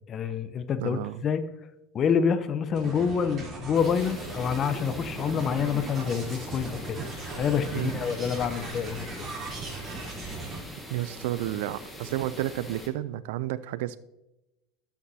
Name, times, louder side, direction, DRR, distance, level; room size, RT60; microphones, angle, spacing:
voice 1, 0.1-1.4 1.9-9.1, left 7 dB, 35° left, 11 dB, 0.7 m, -27 dB
voice 2, 0.8-1.2 7.7-7.9 10.9-14.0, right 14 dB, 70° right, 16 dB, 0.3 m, -31 dB
sound 1, 2.7-10.6, right 3 dB, 35° right, 3.3 m, -38 dB
sound 2, 3.8-12.9, equal, 5° left, 1.7 m, -43 dB
12.0 x 6.0 x 2.7 m, 0.95 s
hypercardioid pair, 100°, 0 cm